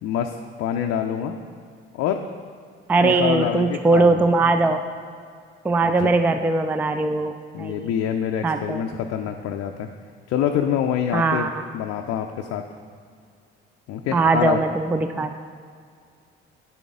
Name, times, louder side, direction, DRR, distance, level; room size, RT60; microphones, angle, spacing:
voice 1, 0.0-1.4 1.9-2.2 3.0-4.3 5.8-6.2 7.5-9.9 10.3-12.6 13.9-14.6, left 9 dB, 50° left, 4 dB, 0.5 m, -26 dB
voice 2, 2.9-4.8 5.6-7.9 8.4-8.8 11.1-11.6 14.1-15.3, right 3 dB, 5° right, 8 dB, 0.3 m, -20 dB
10.0 x 6.8 x 3.6 m, 2.1 s
figure-of-eight pair, 45°, 31 cm